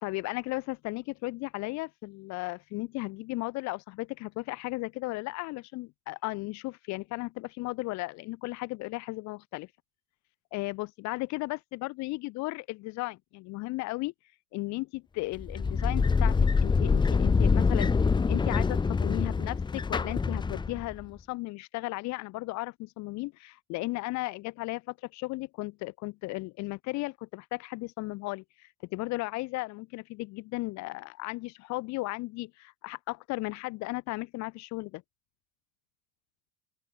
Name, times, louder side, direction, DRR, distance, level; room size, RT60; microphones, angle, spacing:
voice 1, 0.0-9.7 10.5-14.1 14.5-17.9 18.3-35.0, left 22 dB, 50° left, 2.9 m, -35 dB
sound 1, 15.4-21.0, left 5 dB, 15° left, 1.9 m, -25 dB
open air
cardioid pair, 160°, 35 cm